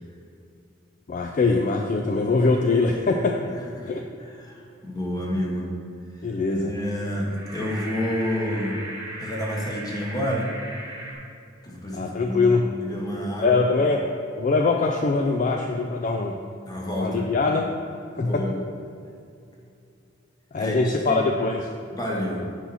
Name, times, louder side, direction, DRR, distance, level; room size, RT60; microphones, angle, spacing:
voice 1, 1.1-3.4 3.9-4.0 6.2-6.7 11.9-12.6 13.4-14.0 14.4-16.4 17.0-17.7 18.2-18.5 20.5-21.6, left 3 dB, 40° left, 2 dB, 0.4 m, -22 dB
voice 2, 3.5-3.9 4.2-5.7 6.1-8.8 9.2-10.5 11.6-12.5 12.8-13.6 16.6-17.3 18.1-18.6 20.6-21.2 21.9-22.4, equal, 20° left, -2 dB, 1.2 m, -29 dB
sound 1, 7.1-11.1, right 1 dB, 15° right, 1.2 m, -37 dB
8.4 x 5.6 x 4.2 m, 2.5 s
head